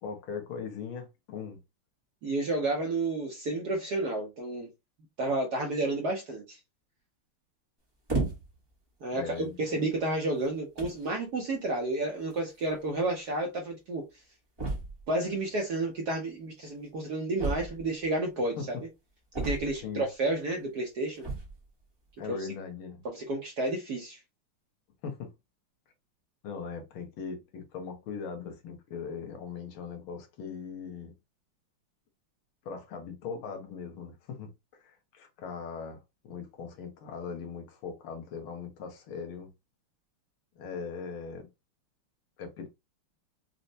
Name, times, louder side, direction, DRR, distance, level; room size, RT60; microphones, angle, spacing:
voice 1, 0.0-1.6 9.1-9.6 18.6-18.7 19.8-20.1 22.2-23.0 25.0-25.3 26.4-31.1 32.6-39.5 40.5-41.5 42.4-42.7, left 5 dB, 75° left, 1.6 m, -40 dB
voice 2, 2.2-4.7 5.2-6.6 9.0-14.0 15.1-18.6 19.4-21.2 22.3-22.4 23.1-24.2, right 2 dB, 65° right, 1.0 m, -31 dB
sound 1, 8.1-8.7 9.5-9.6 10.4-10.5 10.8-11.1 12.3-12.4 12.6-12.7 12.9-13.0 14.6-15.1 17.4-18.1 19.3-20.0 21.2-21.6, right 3 dB, 30° right, 0.4 m, -33 dB
4.3 x 2.0 x 2.6 m
omnidirectional pair, 2.4 m